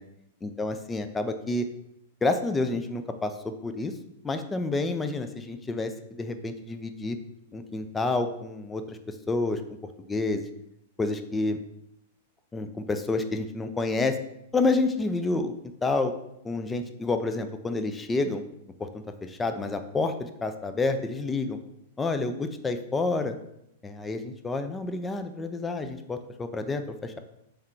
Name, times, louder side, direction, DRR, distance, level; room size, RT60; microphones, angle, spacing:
voice 1, 0.4-1.7 2.2-3.9 4.2-7.2 7.5-9.6 10.1-10.4 11.0-11.6 12.5-14.2 14.5-15.5 15.8-16.1 16.4-18.4 18.8-21.6 22.0-23.4 23.8-27.2, left 3 dB, 15° left, 8 dB, 0.4 m, -29 dB
3.6 x 3.3 x 4.4 m, 0.81 s
hypercardioid pair, 120°, 0 cm